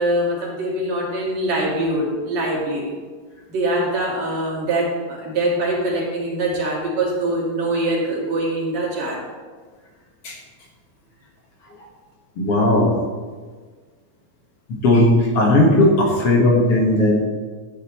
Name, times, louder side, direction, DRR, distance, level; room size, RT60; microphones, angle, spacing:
voice 1, 0.0-2.9 3.5-9.2, right 1 dB, 65° right, -5 dB, 3.9 m, -23 dB
voice 2, 12.4-12.9 14.8-17.3, left 1 dB, 55° left, -1 dB, 2.5 m, -16 dB
13.5 x 10.0 x 3.1 m, 1.5 s
omnidirectional pair, 3.3 m